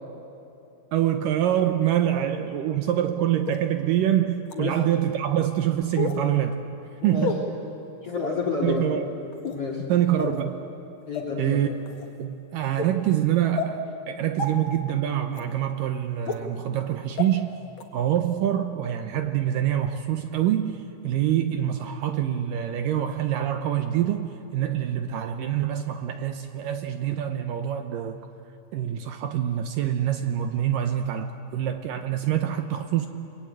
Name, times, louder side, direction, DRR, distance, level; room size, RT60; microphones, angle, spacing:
voice 1, 0.9-6.6 7.0-7.4 8.6-9.1 9.9-10.6 11.4-11.7 12.2-17.6 17.9-28.2 28.7-33.1, right 11 dB, 75° right, 7 dB, 2.0 m, -25 dB
sound 1, 3.5-3.6 4.5-4.6 6.0-6.2 7.2-7.4 8.2-8.4 9.3-9.6 10.2-10.4 11.1-11.2 11.9-12.1 12.8-12.9 13.6-13.7 14.4-14.5 15.3-15.4 16.3-16.4 17.2-17.3 17.8-17.9, left 5 dB, 60° left, 1.3 m, -29 dB
voice 2, 7.0-7.4 8.0-8.8 9.5-9.8 11.1-11.6, left 4 dB, 40° left, 0 dB, 3.2 m, -29 dB
30.0 x 22.0 x 9.0 m, 2.9 s
omnidirectional pair, 4.8 m